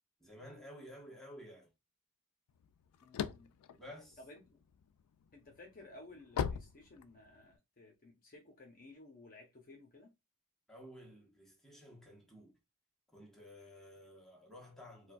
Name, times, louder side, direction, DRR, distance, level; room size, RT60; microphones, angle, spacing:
voice 1, 0.2-1.7 3.7-4.2 10.7-12.6 13.1-15.1, equal, ahead, 1.1 m, -53 dB
sound 1, 2.6-4.8 5.3-7.5, left 8 dB, 85° left, 0.3 m, -38 dB
voice 2, 3.0-3.5 4.2-4.6 5.3-10.1, left 2 dB, 40° left, 0.7 m, -56 dB
4.3 x 2.2 x 2.3 m
head